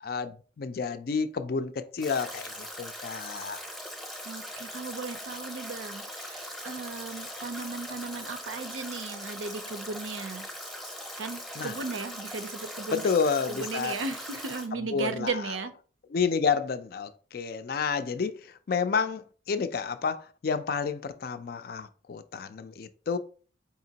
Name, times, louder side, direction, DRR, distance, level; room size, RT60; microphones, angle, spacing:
voice 1, 0.0-3.6 11.6-11.7 12.9-14.0 14.8-15.4 16.1-18.4 18.7-23.2, left 5 dB, 50° left, 0.4 m, -30 dB
Stream / Drip / Trickle dribble, 2.0-14.7, equal, ahead, 0.6 m, -40 dB
voice 2, 4.2-10.5 11.2-13.1 13.5-15.7, right 4 dB, 85° right, 0.5 m, -36 dB
4.9 x 2.9 x 2.8 m
head